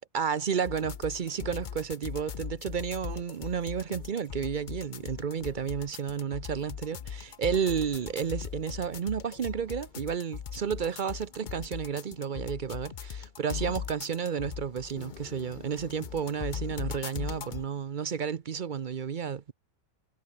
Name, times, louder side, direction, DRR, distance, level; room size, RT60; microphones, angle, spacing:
voice 1, 0.1-19.5, right 7 dB, 50° right, 0.6 m, -32 dB
sound 1, 0.6-17.6, left 8 dB, 50° left, 0.5 m, -40 dB
omnidirectional pair, 1.7 m